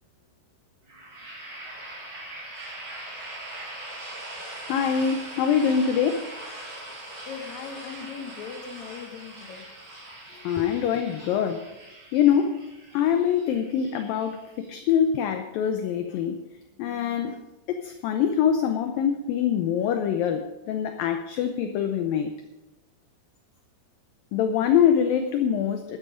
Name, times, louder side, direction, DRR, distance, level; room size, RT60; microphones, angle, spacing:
sound 1, 0.9-14.7, right 1 dB, 45° right, 5.2 m, -41 dB
voice 1, 4.7-6.3 10.3-11.7 12.1-12.6 12.9-16.4 16.8-17.4 17.7-22.3 24.3-26.0, left 8 dB, 75° left, 6 dB, 2.2 m, -24 dB
voice 2, 7.3-9.7 10.6-10.7, left 6 dB, 60° left, 5 dB, 2.1 m, -38 dB
13.0 x 12.5 x 5.1 m, 1.0 s
omnidirectional pair, 4.8 m